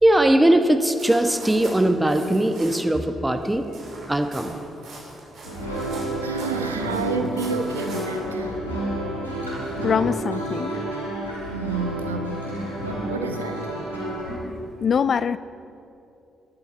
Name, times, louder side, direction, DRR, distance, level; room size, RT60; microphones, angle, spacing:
voice 1, 0.0-3.7 4.1-4.6, right 1 dB, 10° right, 7 dB, 1.2 m, -20 dB
sound 1, 0.9-3.0 3.2-8.3, right 2 dB, 55° right, 3.4 m, -42 dB
sound 2, 5.4-14.4, right 1 dB, 90° left, 2.1 m, -30 dB
voice 2, 6.2-8.5 11.5-12.4 12.8-13.7, right 4 dB, 85° right, 6 dB, 0.7 m, -29 dB
voice 3, 9.8-10.7 14.8-15.4, left 6 dB, 50° left, 16 dB, 0.3 m, -23 dB
20.5 x 11.5 x 4.3 m, 2.7 s
figure-of-eight pair, 40°, 0 cm